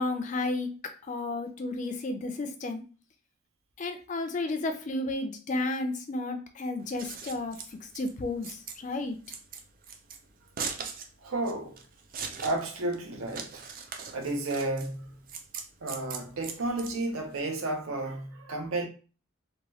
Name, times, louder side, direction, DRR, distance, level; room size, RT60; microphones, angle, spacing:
voice 1, 0.0-2.8 3.8-9.2, left 2 dB, 35° left, 0.3 m, -32 dB
Scissors, 6.8-17.4, right 6 dB, 40° right, 0.4 m, -41 dB
voice 2, 11.2-11.8 12.4-13.6 14.1-15.2 15.8-18.9, right 2 dB, 80° right, 0.6 m, -32 dB
2.8 x 2.2 x 3.0 m
head